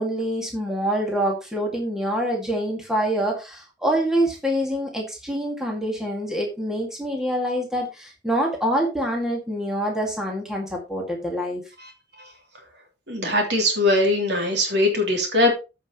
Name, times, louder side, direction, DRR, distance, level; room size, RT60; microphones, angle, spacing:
voice 1, 0.0-11.6, equal, 5° right, -1 dB, 2.1 m, -25 dB
voice 2, 13.1-15.5, left 1 dB, 65° right, 2 dB, 3.1 m, -21 dB
14.0 x 5.8 x 3.0 m, 0.28 s
head